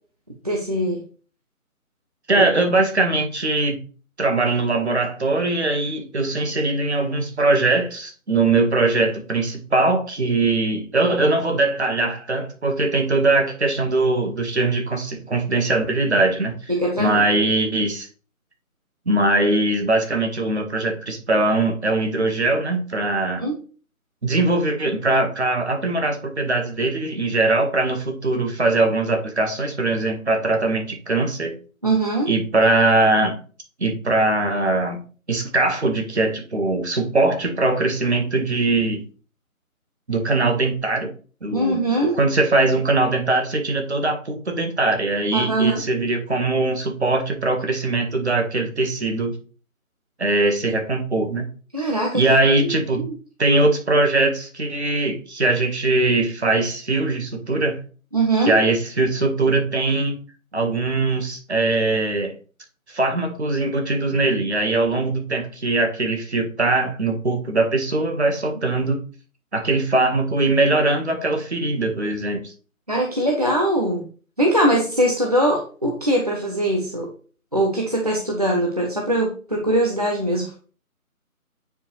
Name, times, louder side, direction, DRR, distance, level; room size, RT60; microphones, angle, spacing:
voice 1, 0.4-1.0 2.3-2.4 16.7-17.2 23.4-23.6 31.8-32.3 41.5-42.2 45.3-45.8 51.7-52.7 53.0-53.1 58.1-58.6 72.9-74.1 74.4-77.1 77.5-80.5, right 1 dB, 25° right, -1 dB, 0.8 m, -22 dB
voice 2, 2.3-3.8 4.2-16.7 17.0-18.1 19.0-23.4 24.2-31.6 32.3-33.4 33.8-39.0 40.1-41.1 41.4-41.8 42.1-49.3 50.2-51.5 51.8-51.9 52.1-53.0 53.4-57.8 58.4-60.2 60.5-62.3 62.9-69.0 69.5-72.5, right 2 dB, 50° right, 4 dB, 1.7 m, -21 dB
8.8 x 4.9 x 3.3 m, 0.39 s
figure-of-eight pair, 160°, 43 cm